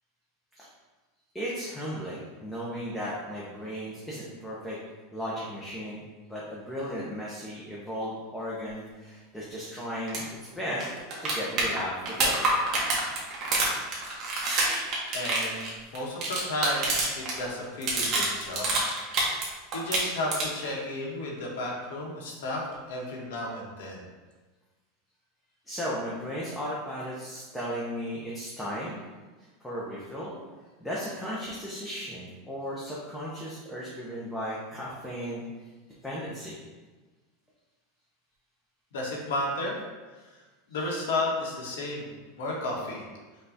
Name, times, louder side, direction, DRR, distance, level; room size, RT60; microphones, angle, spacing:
voice 1, 1.3-4.8 5.1-6.0 6.3-10.9 11.2-12.4 25.7-28.9 29.6-30.4 30.8-35.4 36.0-36.6, equal, 5° left, -7 dB, 0.5 m, -35 dB
sound 1, 10.1-10.2 10.5-10.6 10.8-17.4 17.6-19.5 19.7-20.7 22.7-22.8, right 2 dB, 25° right, 0.9 m, -27 dB
voice 2, 15.1-16.9 17.1-18.7 19.7-24.0 38.9-39.8 40.7-42.1 42.4-43.1, left 2 dB, 80° left, -1 dB, 1.2 m, -32 dB
5.4 x 2.3 x 3.9 m, 1.3 s
supercardioid pair, 175°, 0 cm